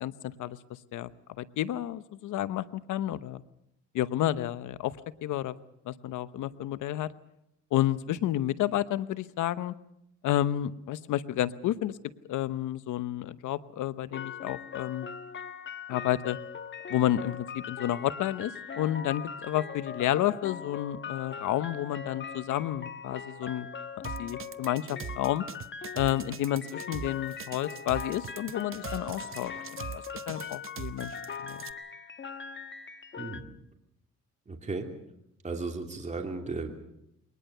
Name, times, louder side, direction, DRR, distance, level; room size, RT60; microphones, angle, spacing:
voice 1, 0.0-0.6 0.9-1.1 1.4-3.4 3.9-4.9 5.2-5.6 5.9-7.1 7.7-9.7 10.2-12.0 12.3-15.1 15.9-16.4 16.9-23.7 24.2-25.4 25.9-29.5 29.8-31.1 31.4-31.6, left 13 dB, 80° left, 15 dB, 1.0 m, -30 dB
sound 1, 14.1-33.4, left 6 dB, 40° left, 1.2 m, -41 dB
sound 2, 24.0-31.7, right 8 dB, 45° right, 0.8 m, -41 dB
voice 2, 34.5-34.9 35.4-36.7, right 3 dB, 25° right, 3 dB, 2.8 m, -35 dB
22.0 x 19.5 x 6.8 m, 0.82 s
cardioid pair, 90°, 30 cm